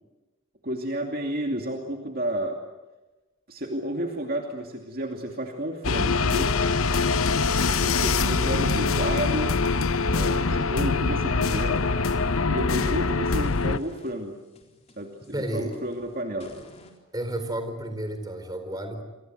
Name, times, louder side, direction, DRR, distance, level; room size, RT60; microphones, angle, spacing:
voice 1, 0.6-2.6 3.5-6.5 7.6-9.6 10.1-11.8 12.5-14.4 15.0-16.6, right 1 dB, 45° right, 2 dB, 2.6 m, -31 dB
sound 1, 5.8-13.8, left 4 dB, 90° left, 0.9 m, -24 dB
sound 2, 11.6-13.0 13.4-17.0, left 1 dB, 30° left, 3.9 m, -53 dB
voice 2, 15.3-15.8 17.1-19.0, right 1 dB, 20° right, 7 dB, 4.3 m, -31 dB
29.0 x 24.5 x 8.0 m, 1.1 s
head